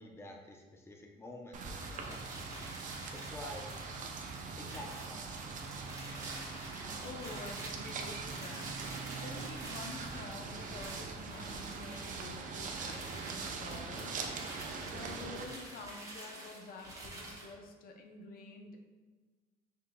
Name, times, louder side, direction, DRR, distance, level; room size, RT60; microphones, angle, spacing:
voice 1, 0.0-2.3 3.1-3.8 4.6-5.7, left 1 dB, 15° left, 1 dB, 0.7 m, -49 dB
sound 1, 1.5-15.5, right 4 dB, 50° right, 0.5 m, -42 dB
sound 2, 1.8-17.5, right 1 dB, 20° right, 1.3 m, -49 dB
voice 2, 6.7-18.8, left 3 dB, 60° left, 3 dB, 0.7 m, -49 dB
5.4 x 3.8 x 2.2 m, 1.4 s
cardioid pair, 110°, 17 cm